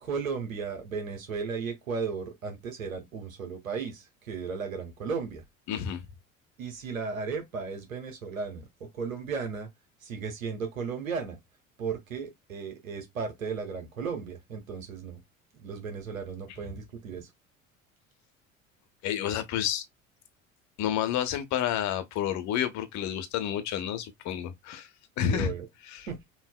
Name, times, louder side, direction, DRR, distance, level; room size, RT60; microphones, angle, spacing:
voice 1, 0.0-5.4 6.6-8.6 8.9-9.7 10.0-11.4 11.8-15.2 15.5-17.3 25.3-25.7 26.1-26.2, right 5 dB, 75° right, 1.1 m, -35 dB
voice 2, 5.7-6.0 19.0-19.8 20.8-24.9 25.2-25.5 25.9-26.1, left 10 dB, 45° left, 1.0 m, -30 dB
5.5 x 2.6 x 2.2 m
figure-of-eight pair, 65°, 40 cm